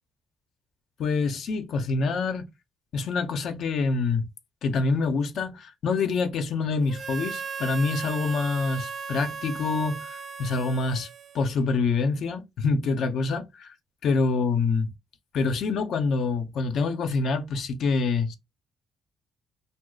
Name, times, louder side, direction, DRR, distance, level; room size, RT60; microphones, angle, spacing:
voice 1, 1.0-2.4 2.9-4.3 4.6-11.1 11.3-13.7 14.0-14.9 15.3-18.4, left 4 dB, 70° left, 0.7 m, -26 dB
Harmonica, 6.9-11.7, right 5 dB, 50° right, 0.3 m, -37 dB
3.0 x 2.0 x 3.8 m
cardioid pair, 90°, 0 cm